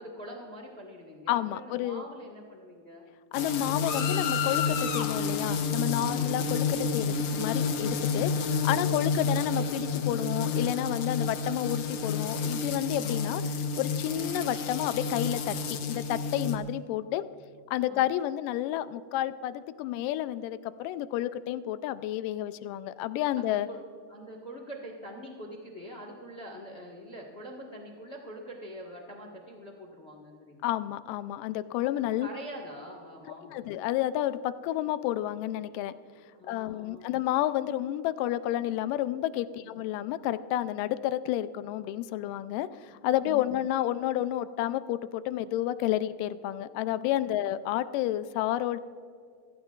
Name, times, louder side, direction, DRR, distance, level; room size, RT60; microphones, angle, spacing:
voice 1, 0.0-3.0 6.0-6.3 8.3-8.5 8.9-9.1 12.9-13.3 16.5-16.7 17.8-18.1 23.4-23.8 24.1-30.8 31.9-33.7 36.3-37.1 39.6-39.7 43.2-43.6 47.3-47.4, equal, 40° left, 0 dB, 0.8 m, -45 dB
voice 2, 1.3-2.0 3.3-13.4 13.8-17.3 17.7-23.7 30.6-32.3 33.5-35.9 36.5-48.8, left 13 dB, 85° left, 14 dB, 2.2 m, -30 dB
sound 1, 3.3-16.6, left 5 dB, 65° left, 1.8 m, -30 dB
27.5 x 15.0 x 2.4 m, 2.2 s
omnidirectional pair, 3.9 m